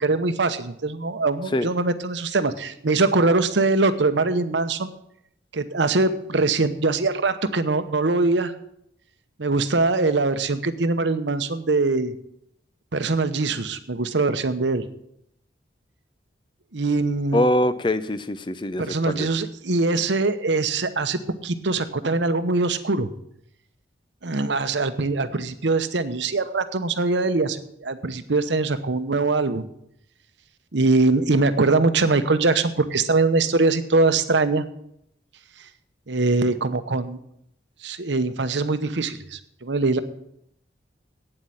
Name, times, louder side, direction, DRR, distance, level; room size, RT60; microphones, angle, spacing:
voice 1, 0.0-4.9 5.5-8.5 9.4-12.1 12.9-14.8 16.7-17.4 18.8-23.1 24.2-29.7 30.7-34.6 36.1-37.2 37.8-40.0, right 3 dB, 80° right, 11 dB, 0.9 m, -22 dB
voice 2, 17.3-19.3, left 1 dB, 25° left, 13 dB, 0.5 m, -23 dB
9.0 x 7.6 x 8.6 m, 0.74 s
head